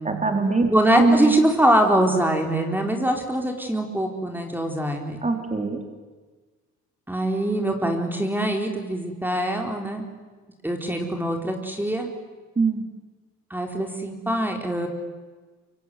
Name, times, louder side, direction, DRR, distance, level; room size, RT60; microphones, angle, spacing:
voice 1, 0.0-1.3 5.2-5.8 12.6-12.8, right 3 dB, 25° right, 4 dB, 4.1 m, -22 dB
voice 2, 0.7-5.2 7.1-10.0 10.6-12.1 13.5-14.9, right 1 dB, 5° right, 3 dB, 4.1 m, -23 dB
24.5 x 24.0 x 9.5 m, 1.4 s
cardioid pair, 90°, 30 cm